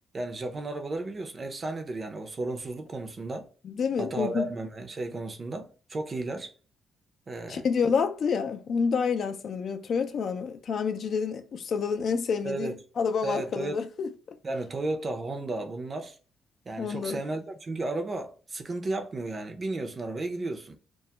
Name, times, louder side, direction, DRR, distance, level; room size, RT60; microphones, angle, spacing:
voice 1, 0.1-3.5 4.0-6.5 7.3-7.6 12.4-12.8 13.2-13.8 14.4-16.2 16.7-20.8, right 2 dB, 35° right, 0.5 m, -33 dB
voice 2, 3.6-4.5 7.5-14.4 16.8-17.2, left 6 dB, 55° left, 0.3 m, -28 dB
2.2 x 2.0 x 2.8 m
cardioid pair, 90°, 0 cm